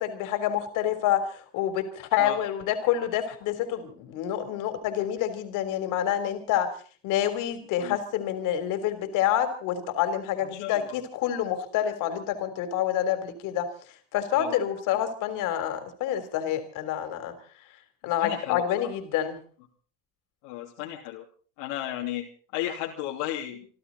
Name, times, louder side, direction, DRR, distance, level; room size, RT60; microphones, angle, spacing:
voice 1, 0.0-6.7 7.0-13.7 14.1-17.3 18.0-19.4, left 10 dB, 70° left, 9 dB, 3.6 m, -27 dB
voice 2, 10.5-11.0 14.3-14.6 18.2-18.6 20.4-21.2 21.6-23.7, left 13 dB, 85° left, -2 dB, 3.0 m, -34 dB
27.5 x 12.5 x 4.1 m, 0.42 s
supercardioid pair, 85°, 32 cm